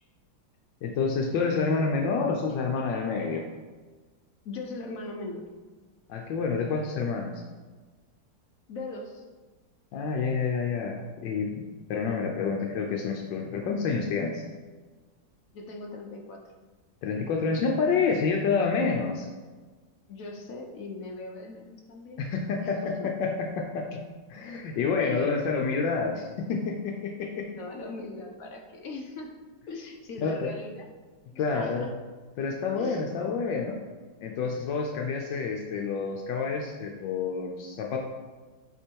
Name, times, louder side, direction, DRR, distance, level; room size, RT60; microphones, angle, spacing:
voice 1, 0.8-3.5 6.1-7.4 9.9-14.4 17.0-19.3 22.2-24.0 24.3-27.5 30.2-30.5 31.4-31.9 32.4-33.8 34.2-38.0, left 5 dB, 80° left, 1 dB, 1.3 m, -28 dB
voice 2, 4.4-5.4 8.7-9.2 15.5-16.4 20.1-22.2 22.6-23.1 25.0-25.4 27.5-29.3 29.7-30.9 31.3-31.9 32.8-33.0, left 3 dB, 60° left, 2 dB, 0.9 m, -39 dB
8.0 x 3.0 x 4.4 m, 1.3 s
omnidirectional pair, 2.0 m